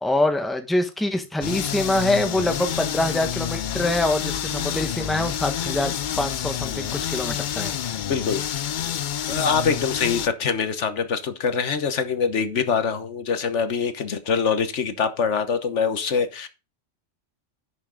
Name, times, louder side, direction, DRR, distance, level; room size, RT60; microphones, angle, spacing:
voice 1, 0.0-7.8, left 1 dB, ahead, 1.3 m, -25 dB
sound 1, 1.4-10.3, left 9 dB, 55° left, 0.6 m, -28 dB
voice 2, 8.1-8.7 9.3-16.5, left 6 dB, 80° left, 1.4 m, -24 dB
11.0 x 6.5 x 3.9 m
omnidirectional pair, 1.2 m